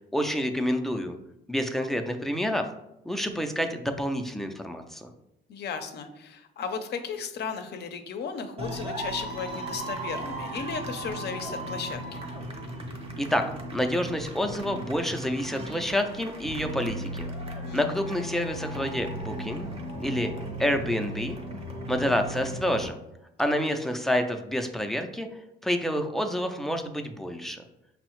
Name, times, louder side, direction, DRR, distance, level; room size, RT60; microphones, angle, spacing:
voice 1, 0.1-1.2 1.5-2.7 3.1-5.1 13.2-13.4 13.7-17.3 17.7-19.7 20.0-20.3 20.6-21.4 21.9-23.0 23.4-25.3 25.6-27.6, equal, ahead, 5 dB, 0.4 m, -28 dB
voice 2, 5.5-12.2 17.6-18.0 23.4-23.6, left 6 dB, 60° left, 8 dB, 0.5 m, -35 dB
sound 1, 8.6-22.9, right 1 dB, 30° right, 0.7 m, -36 dB
5.3 x 2.0 x 3.0 m, 0.87 s
cardioid pair, 90°, 20 cm